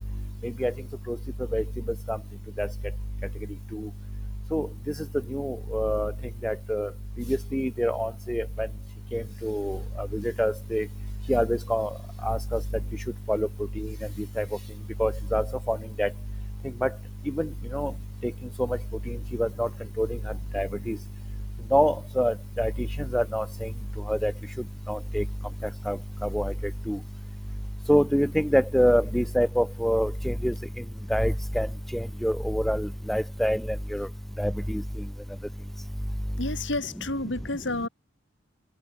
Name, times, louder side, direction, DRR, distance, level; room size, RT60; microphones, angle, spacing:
voice 1, 0.4-0.7 1.1-1.2 1.5-1.6 2.1-2.2 2.6-2.7 3.7-3.9 4.5-4.7 5.3-6.1 6.4-6.9 7.3-8.7 9.1-10.9 11.3-11.9 12.2-12.6 13.3-13.5 13.8-13.9 14.4-14.5 15.0-16.1 16.8-16.9 17.3-17.9 18.6-18.7 19.1-19.7 20.0-20.2 20.5-21.0 21.7-22.9 23.1-23.7 24.1-24.3 24.9-25.2 25.9-26.0 26.2-26.5 26.9-27.0 27.9-30.5 31.1-31.7 31.9-34.1 34.4-34.8, equal, ahead, 1.4 m, -26 dB
voice 2, 36.4-37.9, left 2 dB, 80° left, 5.9 m, -30 dB
open air
head